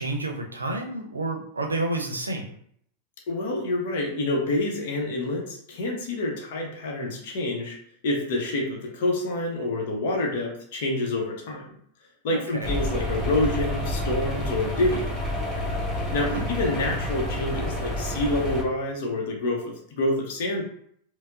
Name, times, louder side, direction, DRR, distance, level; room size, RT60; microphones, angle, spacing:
voice 1, 0.0-2.5 12.3-12.7 16.3-16.5, right 2 dB, 80° right, 2 dB, 0.5 m, -30 dB
voice 2, 3.3-7.8 8.0-11.7 12.2-15.0 16.0-20.6, left 2 dB, 50° left, 0 dB, 0.7 m, -27 dB
sound 1, 12.6-18.6, left 1 dB, ahead, 1.3 m, -29 dB
4.3 x 2.0 x 2.4 m, 0.65 s
figure-of-eight pair, 90°, 0 cm